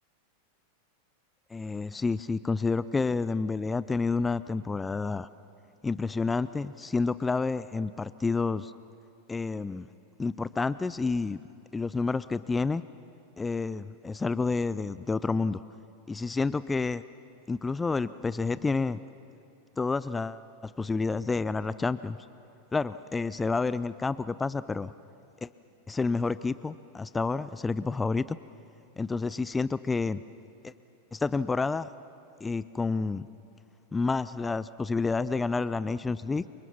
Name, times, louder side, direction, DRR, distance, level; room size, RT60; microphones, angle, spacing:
voice 1, 1.5-5.3 5.8-8.7 9.3-9.9 10.2-11.4 11.7-12.8 13.4-15.6 16.1-17.0 17.5-19.0 19.8-22.2 22.7-24.9 25.4-25.5 25.9-28.4 29.0-30.2 30.6-30.7 31.1-31.9 32.4-33.3 33.9-36.4, left 4 dB, 10° left, 16 dB, 0.5 m, -29 dB
29.0 x 25.0 x 6.0 m, 2.9 s
figure-of-eight pair, 90°, 0 cm